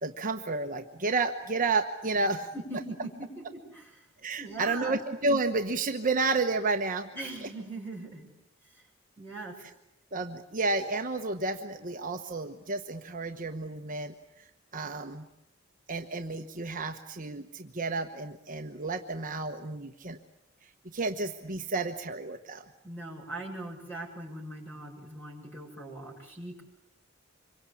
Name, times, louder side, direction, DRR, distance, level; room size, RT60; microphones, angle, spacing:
voice 1, 0.0-2.5 4.2-7.1 10.1-14.1 14.7-15.2 15.9-20.2 20.8-22.6, right 3 dB, 40° right, 5 dB, 1.1 m, -31 dB
voice 2, 2.5-4.1 4.4-5.0 7.1-8.3 9.2-9.6 22.8-26.6, right 2 dB, 10° left, 1 dB, 7.2 m, -40 dB
26.5 x 23.5 x 8.6 m, 0.84 s
head